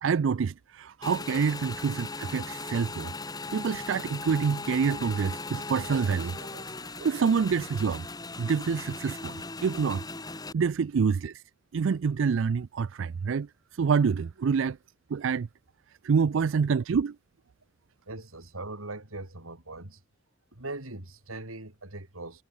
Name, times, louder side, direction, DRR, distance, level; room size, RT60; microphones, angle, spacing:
voice 1, 0.0-3.1 3.5-8.0 8.4-11.4 11.7-14.8 15.1-15.5 16.0-17.2, right 6 dB, 65° right, 0.4 m, -27 dB
Motorcycle / Engine, 1.0-10.5, left 3 dB, 20° left, 1.5 m, -38 dB
voice 2, 18.1-20.0 20.5-22.4, right 2 dB, 85° right, 3.8 m, -40 dB
head